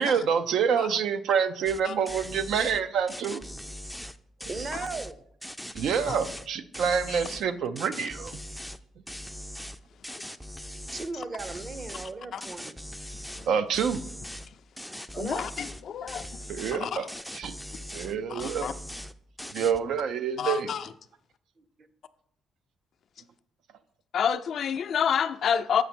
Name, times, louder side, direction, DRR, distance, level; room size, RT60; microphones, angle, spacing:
voice 1, 0.0-3.4 4.4-4.5 5.7-8.4 13.5-14.0 16.5-17.6 17.9-18.8 19.4-20.7, right 7 dB, 75° right, 0.5 m, -27 dB
sound 1, 1.7-1.8 2.1-2.8 3.1-5.1 5.4-6.5 6.7-7.4 7.8-8.8 9.1-11.1 11.4-12.1 12.4-13.5 13.7-14.5 14.8-15.8 16.1-16.8 17.1-18.1 18.4-19.1 19.4-19.8, equal, ahead, 0.4 m, -40 dB
voice 2, 4.5-5.2 10.9-12.9 15.2-15.4 21.6-21.7, right 4 dB, 40° right, 0.8 m, -37 dB
voice 3, 15.1-16.3 16.8-17.1 18.3-18.7 20.4-20.9 24.1-25.8, left 8 dB, 60° left, 0.4 m, -28 dB
8.0 x 5.0 x 4.4 m
cardioid pair, 90°, 0 cm